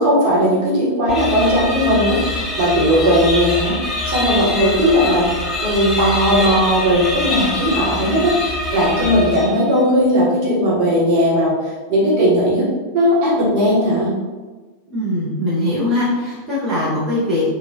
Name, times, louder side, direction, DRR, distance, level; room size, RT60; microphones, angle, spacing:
voice 1, 0.0-2.2 2.6-3.7 4.0-5.3 5.6-12.7 12.9-14.1, equal, 45° right, -7 dB, 1.2 m, -17 dB
sound 1, 1.1-9.8, left 2 dB, 15° left, 0.6 m, -24 dB
voice 2, 14.9-17.4, left 1 dB, 20° right, -9 dB, 0.9 m, -21 dB
3.0 x 2.4 x 2.8 m, 1.3 s
figure-of-eight pair, 90°, 0 cm